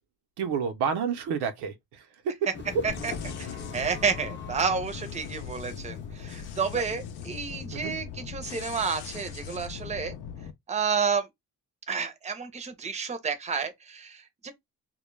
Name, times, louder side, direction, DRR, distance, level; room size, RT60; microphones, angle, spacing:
voice 1, 0.4-2.3 6.3-6.4 7.7-7.9, right 6 dB, 85° right, 0.6 m, -30 dB
sound 1, 2.5-9.4, left 5 dB, 30° left, 0.6 m, -43 dB
sound 2, 2.9-10.5, left 7 dB, 80° left, 0.6 m, -40 dB
voice 2, 3.4-10.2 10.7-11.3 11.9-14.5, right 5 dB, 20° right, 0.5 m, -30 dB
2.2 x 2.0 x 3.1 m
cardioid pair, 85°, 38 cm